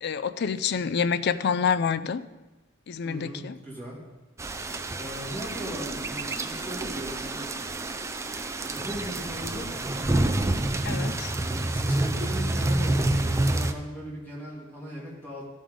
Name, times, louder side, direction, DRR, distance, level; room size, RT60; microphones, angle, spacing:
voice 1, 0.0-2.2 2.9-3.5 10.8-11.3, left 6 dB, 55° left, 14 dB, 0.4 m, -27 dB
voice 2, 3.0-4.0 4.8-7.5 8.7-10.1 11.3-15.4, equal, 10° left, -4 dB, 2.3 m, -38 dB
sound 1, 4.4-13.7, right 2 dB, 15° right, 0.4 m, -28 dB
13.0 x 5.3 x 5.1 m, 1.1 s
head